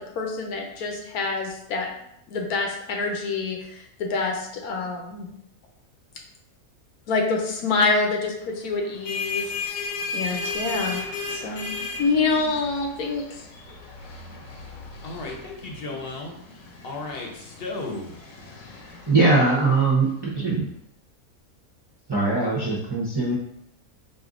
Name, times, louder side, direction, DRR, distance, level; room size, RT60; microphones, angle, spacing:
voice 1, 0.2-1.9 2.3-5.3 7.1-11.0 11.3-11.7 12.0-13.5, left 3 dB, 85° left, 1 dB, 1.3 m, -26 dB
sound 1, 8.8-20.1, left 4 dB, 70° left, 1.2 m, -35 dB
voice 2, 15.0-18.1, left 2 dB, 50° left, 0 dB, 0.9 m, -35 dB
voice 3, 19.1-20.7 22.1-23.4, right 3 dB, 25° right, -6 dB, 0.6 m, -21 dB
4.3 x 2.6 x 3.7 m, 0.77 s
omnidirectional pair, 1.5 m